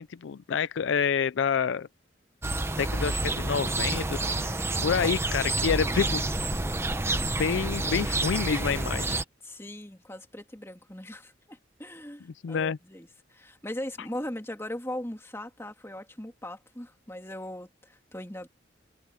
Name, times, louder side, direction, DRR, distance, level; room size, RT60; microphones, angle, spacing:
voice 1, 0.0-1.9 2.8-4.6 4.8-6.5 7.4-9.2 12.4-12.8, left 6 dB, 65° left, 0.4 m, -28 dB
sound 1, 2.4-9.2, right 2 dB, 15° right, 0.9 m, -29 dB
voice 2, 4.8-5.2 9.4-18.5, left 1 dB, 15° left, 2.6 m, -39 dB
head